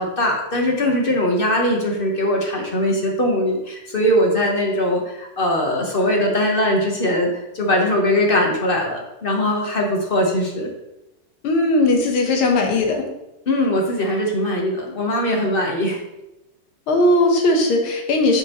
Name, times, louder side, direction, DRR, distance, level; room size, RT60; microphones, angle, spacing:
voice 1, 0.0-10.7 13.5-16.0, left 1 dB, 45° left, 0 dB, 0.7 m, -21 dB
voice 2, 11.4-13.0 16.9-18.4, left 2 dB, 80° left, 3 dB, 1.8 m, -18 dB
8.3 x 5.0 x 2.9 m, 0.93 s
omnidirectional pair, 2.3 m